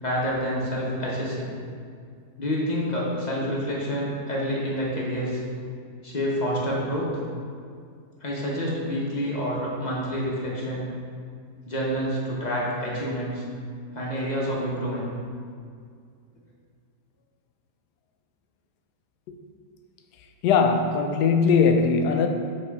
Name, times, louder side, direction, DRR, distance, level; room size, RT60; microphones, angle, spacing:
voice 1, 0.0-1.5 2.4-5.4 6.0-7.2 8.2-10.9 11.6-13.4 13.9-15.1, equal, 30° left, 1.0 m, -28 dB
voice 2, 20.4-22.3, left 5 dB, 85° left, 1.1 m, -20 dB
5.9 x 3.9 x 4.6 m
omnidirectional pair, 1.7 m